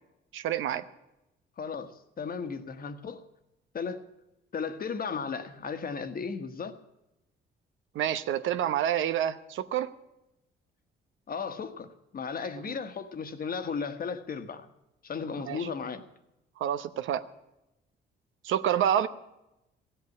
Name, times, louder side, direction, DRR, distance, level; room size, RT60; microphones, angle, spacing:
voice 1, 0.3-0.9 7.9-9.9 12.7-12.8 15.5-15.7 16.6-17.3 18.4-19.1, right 10 dB, 80° right, 0.8 m, -28 dB
voice 2, 1.6-3.3 3.7-4.1 4.5-6.8 11.3-14.7 15.0-16.0, left 5 dB, 45° left, 1.3 m, -35 dB
15.5 x 8.0 x 9.6 m
cardioid pair, 90°, 20 cm